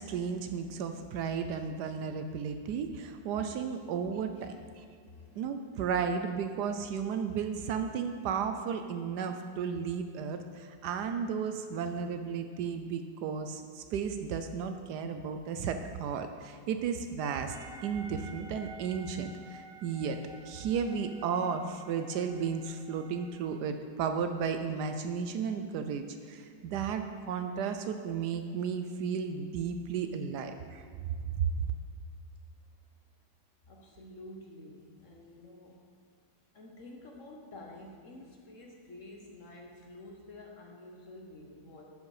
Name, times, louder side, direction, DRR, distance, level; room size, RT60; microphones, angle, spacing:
voice 1, 0.0-4.8 5.4-17.6 17.8-20.2 20.4-30.8 31.3-31.6, right 6 dB, 75° right, 7 dB, 1.1 m, -34 dB
voice 2, 5.1-5.5 12.1-12.2 30.3-30.4 33.7-35.8 36.5-41.8, left 1 dB, 50° left, 0 dB, 1.2 m, -50 dB
sound 1, 17.5-23.6, right 2 dB, 50° right, 0.7 m, -51 dB
11.5 x 5.2 x 4.8 m, 2.2 s
omnidirectional pair, 1.9 m